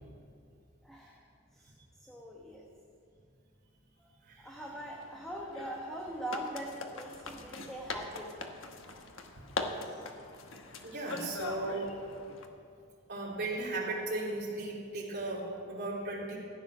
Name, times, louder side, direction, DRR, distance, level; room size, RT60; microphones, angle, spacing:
voice 1, 0.8-1.2 1.5-1.7 2.0-2.6 4.0-4.1 4.4-8.5 9.8-10.0, right 1 dB, ahead, -3 dB, 1.3 m, -42 dB
voice 2, 4.2-4.6 10.8-12.0 13.1-16.4, right 2 dB, 55° right, -5 dB, 3.4 m, -36 dB
sound 1, 4.6-12.4, left 3 dB, 80° left, 1.2 m, -42 dB
15.0 x 9.3 x 6.2 m, 2.5 s
head